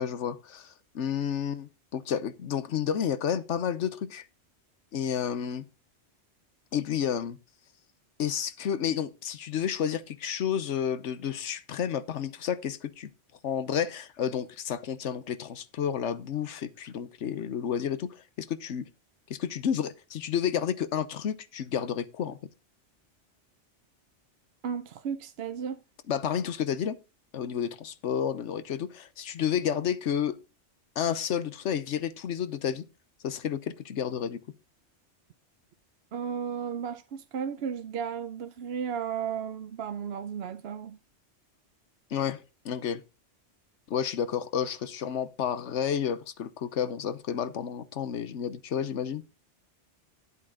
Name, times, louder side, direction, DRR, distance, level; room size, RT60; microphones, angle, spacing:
voice 1, 0.0-4.3 4.9-5.6 6.7-7.4 8.2-13.1 13.4-18.1 18.4-18.8 19.3-22.4 26.1-27.0 27.3-30.3 31.0-32.8 33.2-34.4 42.1-42.4 42.6-43.0 43.9-49.2, left 8 dB, 80° left, 1.2 m, -31 dB
voice 2, 24.6-25.8 36.1-41.0, right 7 dB, 65° right, 0.9 m, -34 dB
10.5 x 8.2 x 3.8 m
omnidirectional pair, 1.2 m